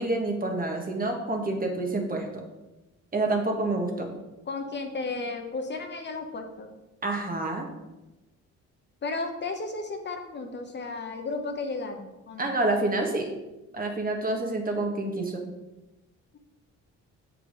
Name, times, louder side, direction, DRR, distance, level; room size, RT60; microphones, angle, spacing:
voice 1, 0.0-2.3 3.1-4.1 7.0-7.7 12.4-13.3 13.7-15.4, right 2 dB, 30° right, 2 dB, 1.5 m, -28 dB
voice 2, 4.5-6.7 9.0-12.5, left 3 dB, 35° left, 4 dB, 1.0 m, -34 dB
6.7 x 4.8 x 5.3 m, 1.0 s
cardioid pair, 90°, 30 cm